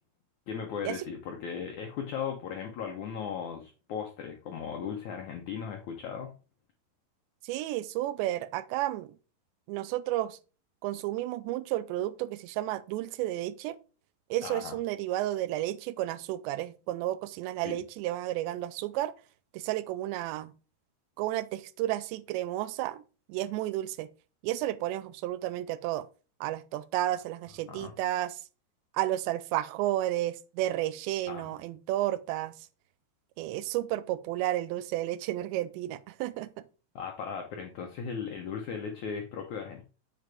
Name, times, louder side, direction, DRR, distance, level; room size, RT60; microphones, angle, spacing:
voice 1, 0.5-6.3 14.4-14.8 17.6-17.8 27.7-27.9 31.3-31.5 37.0-39.8, left 7 dB, 80° left, 1.7 m, -37 dB
voice 2, 7.4-9.1 9.7-10.4 10.8-13.8 14.3-19.1 19.5-20.5 21.2-23.0 23.3-24.1 24.4-26.1 26.4-28.4 28.9-32.5 33.4-36.5, right 14 dB, 85° right, 2.8 m, -32 dB
7.3 x 6.7 x 3.5 m
omnidirectional pair, 5.0 m